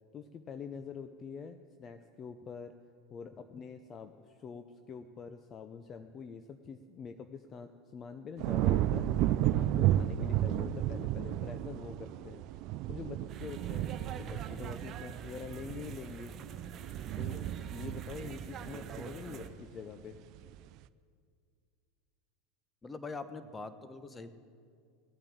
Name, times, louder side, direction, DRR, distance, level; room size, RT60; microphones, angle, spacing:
voice 1, 0.1-2.7 3.1-12.4 12.9-13.9 14.2-16.4 17.2-20.2, left 6 dB, 35° left, 9 dB, 0.7 m, -45 dB
sound 1, 8.4-19.7 20.1-20.6, right 13 dB, 55° right, 0.5 m, -33 dB
sound 2, 13.3-19.5, right 7 dB, 40° right, 1.1 m, -46 dB
voice 2, 22.8-24.3, left 3 dB, 20° left, 11 dB, 1.1 m, -43 dB
17.5 x 8.8 x 7.9 m, 2.2 s
hypercardioid pair, 100°, 0 cm